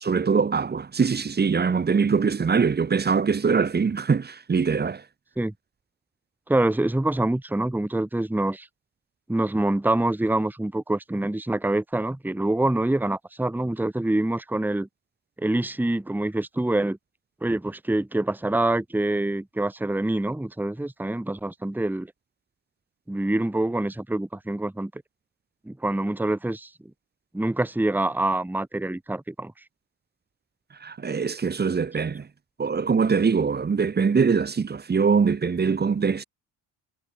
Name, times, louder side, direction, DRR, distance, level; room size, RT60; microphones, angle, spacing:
voice 1, 0.0-5.0 30.8-32.3 32.6-36.2, right 5 dB, 20° right, 0.7 m, -23 dB
voice 2, 6.5-8.7 9.3-14.9 15.4-17.0 17.4-22.1 23.1-24.9 25.7-26.7 27.3-29.5, right 1 dB, 5° right, 1.1 m, -25 dB
supercardioid pair, 60°, 47 cm